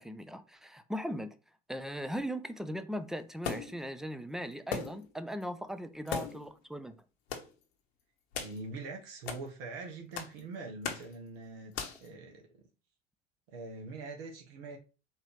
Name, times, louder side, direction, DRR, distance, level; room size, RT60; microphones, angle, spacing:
voice 1, 0.0-1.4 1.7-7.0, equal, ahead, 0.4 m, -39 dB
sound 1, 3.4-3.9 4.7-5.1 5.4-5.5 6.1-6.5 7.3-7.5 8.3-8.6 9.3-9.4 10.2-10.4 10.8-11.1 11.7-12.1, left 6 dB, 65° left, 0.9 m, -38 dB
voice 2, 8.4-11.7 12.0-12.6 13.5-14.8, right 3 dB, 60° right, 1.1 m, -43 dB
4.3 x 2.7 x 3.4 m
figure-of-eight pair, 70°, 33 cm